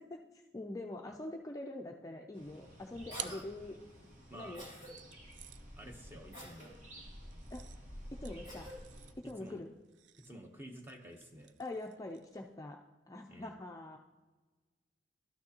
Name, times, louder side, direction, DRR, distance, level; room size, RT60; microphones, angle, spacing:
voice 1, 0.5-3.7 4.3-4.7 7.5-7.7 8.1-8.7 9.2-9.7 11.6-12.8 13.1-14.0, left 2 dB, 20° left, 2 dB, 0.4 m, -44 dB
sound 1, 2.3-9.1, equal, 45° right, 1.2 m, -52 dB
Cough, 3.1-3.4 4.5-4.9 6.3-6.7 8.4-8.8, equal, 30° right, 2.6 m, -48 dB
sound 2, 3.2-4.3 5.0-12.6, right 11 dB, 75° right, 0.4 m, -53 dB
voice 2, 5.8-6.7 9.4-9.6 10.2-11.5 13.3-13.6, right 1 dB, 10° right, 3 dB, 0.8 m, -50 dB
12.5 x 6.1 x 2.8 m, 1.2 s
head